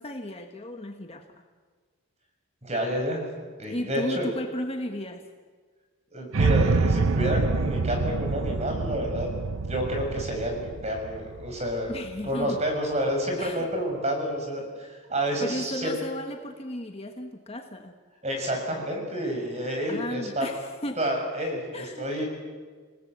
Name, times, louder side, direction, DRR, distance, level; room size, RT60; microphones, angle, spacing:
voice 1, 0.0-1.4 3.7-5.2 11.9-12.6 13.4-13.7 15.4-18.0 19.9-21.0 21.7-22.1, left 1 dB, 25° left, 4 dB, 1.5 m, -34 dB
voice 2, 2.6-3.2 3.6-4.3 6.1-9.3 9.6-11.9 12.2-15.9 18.2-20.5 21.0-22.3, equal, 30° right, 2 dB, 6.8 m, -29 dB
sound 1, 6.3-12.4, right 3 dB, 75° right, 0.7 m, -27 dB
29.0 x 18.5 x 8.2 m, 1.5 s
head